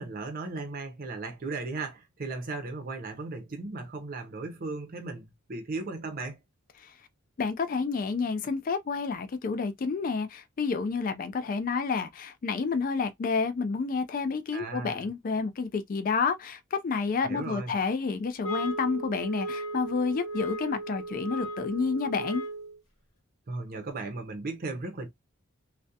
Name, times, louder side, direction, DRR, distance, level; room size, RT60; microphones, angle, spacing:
voice 1, 0.0-6.4 14.5-15.1 17.2-17.7 23.5-25.1, right 3 dB, 40° right, 0.6 m, -36 dB
voice 2, 7.4-22.4, left 4 dB, 40° left, 0.3 m, -29 dB
sound 1, 18.4-22.8, right 1 dB, 70° left, 1.2 m, -36 dB
2.3 x 2.1 x 2.6 m
head